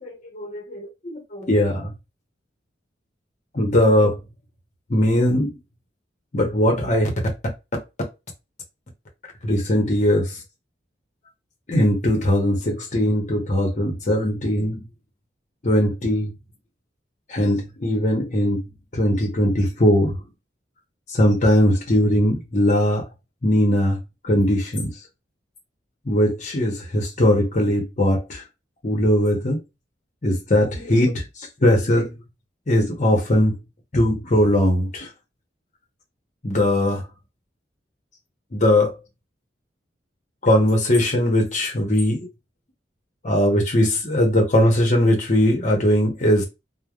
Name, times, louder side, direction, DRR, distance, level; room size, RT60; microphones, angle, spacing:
voice 1, 0.0-1.9 3.5-4.2 4.9-5.5 6.3-7.1 9.4-10.3 11.7-14.8 15.6-16.3 17.3-18.6 18.9-20.2 21.1-23.1 23.4-24.0 24.3-24.9 26.1-28.4 28.8-29.6 30.2-31.2 31.6-32.1 32.7-33.5 33.9-35.1 36.4-37.0 38.5-38.9 40.4-42.3 43.2-46.4, left 1 dB, 40° left, 0.9 m, -20 dB
3.2 x 2.1 x 2.4 m
head